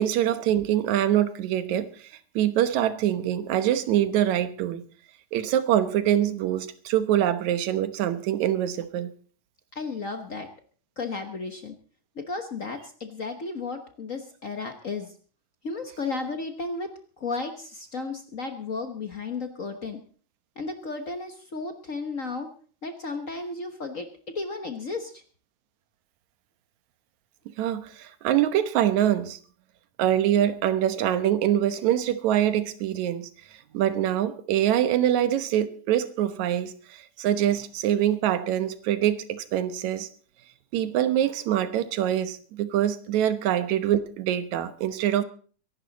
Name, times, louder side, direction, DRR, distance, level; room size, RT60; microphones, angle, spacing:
voice 1, 0.0-1.9 2.4-4.8 5.3-9.1 27.6-29.4 30.0-33.3 33.7-40.1 40.7-45.2, right 11 dB, 80° right, 11 dB, 2.4 m, -24 dB
voice 2, 9.7-10.5 11.0-11.8 12.1-15.2 15.6-16.9 17.2-20.0 20.6-22.5 22.8-24.1 24.3-25.2, left 3 dB, 65° left, 6 dB, 0.8 m, -33 dB
23.0 x 11.5 x 4.1 m, 0.42 s
omnidirectional pair, 3.3 m